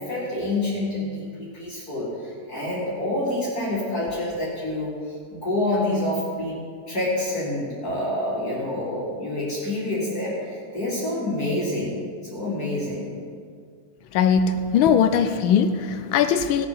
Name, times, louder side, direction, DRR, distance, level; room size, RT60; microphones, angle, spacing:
voice 1, 0.0-4.9 5.3-6.6 6.9-12.0 12.3-13.1, left 1 dB, 45° left, -7 dB, 2.9 m, -27 dB
voice 2, 14.1-16.7, left 7 dB, 75° left, 9 dB, 1.4 m, -20 dB
17.0 x 6.8 x 5.5 m, 2.1 s
omnidirectional pair, 2.3 m